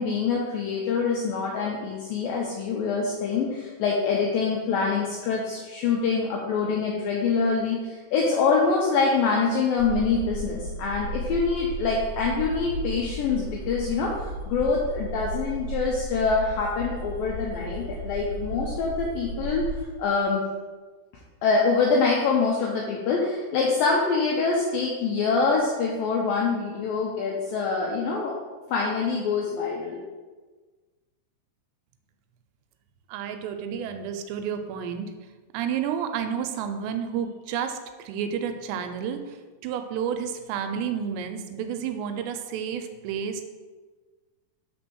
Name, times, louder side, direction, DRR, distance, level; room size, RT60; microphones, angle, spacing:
voice 1, 0.0-19.6 20.0-20.4 21.4-28.3 28.7-30.0, left 4 dB, 85° left, -2 dB, 2.0 m, -25 dB
sound 1, 9.8-19.8, right 2 dB, 70° left, 1.7 m, -34 dB
voice 2, 33.1-35.1 35.5-43.4, right 8 dB, 85° right, 7 dB, 2.7 m, -31 dB
5.5 x 4.2 x 6.1 m, 1.3 s
omnidirectional pair, 5.0 m